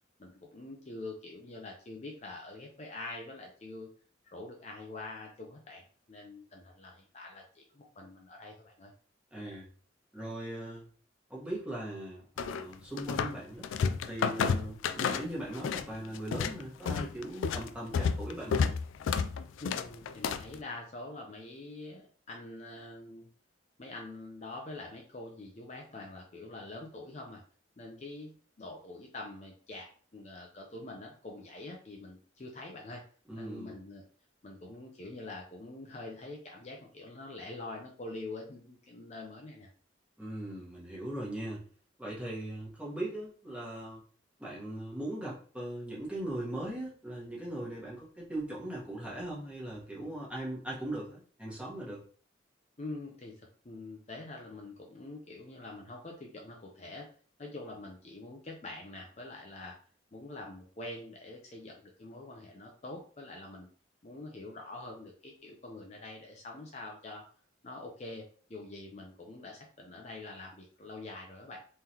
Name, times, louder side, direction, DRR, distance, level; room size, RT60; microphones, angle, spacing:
voice 1, 0.2-3.9 4.3-8.9 19.6-23.3 23.8-27.4 27.8-33.0 33.4-34.0 34.4-39.7 52.8-53.3 53.6-57.1 57.4-59.8 60.1-63.7 64.0-67.2 67.6-71.6, left 2 dB, 35° left, 0 dB, 0.5 m, -45 dB
voice 2, 9.3-9.7 10.1-10.9 11.3-13.7 14.1-18.7 33.3-33.8 40.2-41.6 42.0-44.0 44.4-52.0, right 1 dB, 5° right, -5 dB, 1.2 m, -39 dB
sound 1, 12.4-13.4 13.6-15.9 16.2-20.6, left 6 dB, 90° left, 0.3 m, -31 dB
3.7 x 3.2 x 2.8 m, 0.43 s
head